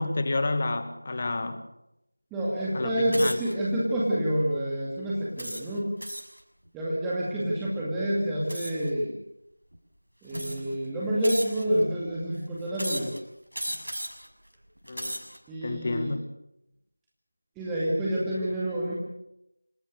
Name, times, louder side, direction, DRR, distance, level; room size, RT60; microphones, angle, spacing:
voice 1, 0.0-1.6 2.7-3.4 14.9-15.2 15.6-16.2, left 2 dB, 30° left, 10 dB, 1.9 m, -29 dB
voice 2, 2.3-5.9 6.7-9.1 10.2-13.1 15.5-16.1 17.6-18.9, right 1 dB, 5° right, -7 dB, 2.3 m, -28 dB
sound 1, 3.1-3.5 4.2-4.4 5.4-6.4 8.5-8.9 9.7-9.8 10.3-10.8 11.2-11.8 12.7-13.2 13.5-14.3 14.8-15.4, equal, 80° right, 6.5 m, -35 dB
27.0 x 18.0 x 6.7 m, 0.81 s
figure-of-eight pair, 170°, 0 cm